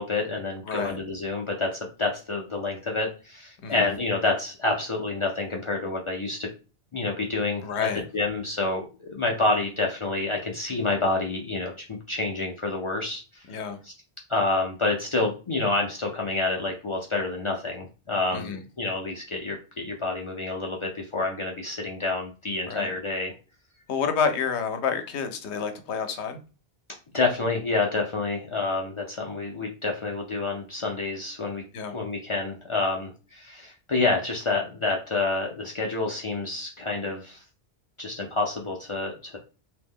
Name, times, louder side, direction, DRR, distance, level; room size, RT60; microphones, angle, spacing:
voice 1, 0.0-6.5 6.9-7.9 8.1-11.7 12.1-13.5 14.3-23.3 27.1-31.6 31.9-37.4 38.0-39.4, left 3 dB, 55° left, 0 dB, 0.3 m, -28 dB
voice 2, 0.6-1.0 3.6-3.9 7.6-8.0 13.5-13.8 18.3-18.6 22.7-22.9 23.9-26.4 31.7-32.0, left 6 dB, 80° left, 7 dB, 0.9 m, -29 dB
2.9 x 2.0 x 3.5 m, 0.34 s
omnidirectional pair, 1.1 m